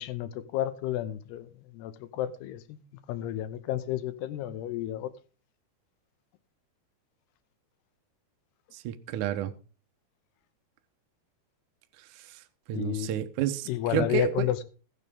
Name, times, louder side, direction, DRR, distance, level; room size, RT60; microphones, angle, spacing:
voice 1, 0.0-2.8 3.1-5.1 12.7-13.1 13.7-14.6, left 12 dB, 85° left, 2.9 m, -31 dB
voice 2, 8.7-9.5 12.1-12.4 12.7-14.5, right 11 dB, 75° right, 1.9 m, -30 dB
20.0 x 6.8 x 3.6 m
omnidirectional pair, 4.6 m